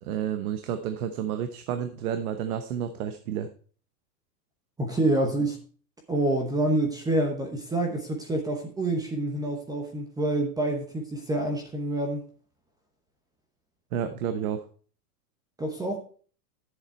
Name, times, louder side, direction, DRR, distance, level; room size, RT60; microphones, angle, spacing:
voice 1, 0.0-3.5 13.9-14.6, right 9 dB, 60° right, 8 dB, 1.1 m, -30 dB
voice 2, 4.8-5.6 6.1-12.2 15.6-16.0, right 1 dB, 10° right, 3 dB, 0.9 m, -27 dB
11.0 x 7.4 x 4.3 m, 0.43 s
supercardioid pair, 155°, 49 cm